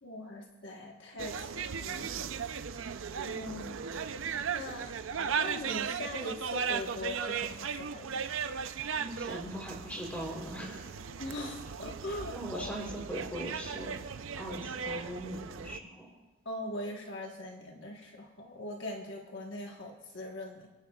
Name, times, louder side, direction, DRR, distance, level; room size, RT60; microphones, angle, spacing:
voice 1, 0.0-2.3 3.2-3.8 4.5-4.9 5.4-8.3 11.2-12.7 16.4-20.7, left 1 dB, 55° left, 0 dB, 1.3 m, -41 dB
sound 1, 1.2-15.8, right 6 dB, 65° right, 0.5 m, -37 dB
voice 2, 9.0-11.0 11.6-11.7 12.1-14.1 14.4-16.1, equal, 5° left, -1 dB, 3.3 m, -40 dB
27.5 x 11.0 x 2.4 m, 1.2 s
head